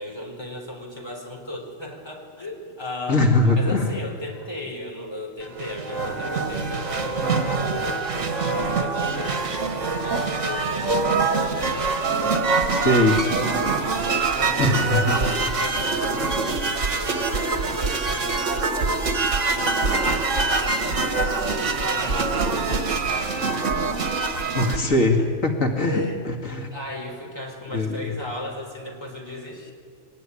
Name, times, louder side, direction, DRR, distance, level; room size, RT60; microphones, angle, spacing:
voice 1, 0.0-9.4 9.9-12.0 12.9-19.1 20.0-24.3 24.9-25.3 25.8-26.2 26.7-29.7, left 1 dB, 20° left, 0 dB, 4.3 m, -36 dB
voice 2, 3.1-3.9 12.7-13.2 14.6-15.1 24.6-26.7 27.7-28.0, left 2 dB, 90° left, 2 dB, 2.6 m, -21 dB
sound 1, 5.4-24.8, right 4 dB, 65° right, 2.0 m, -24 dB
23.5 x 19.5 x 9.9 m, 2.3 s
omnidirectional pair, 1.3 m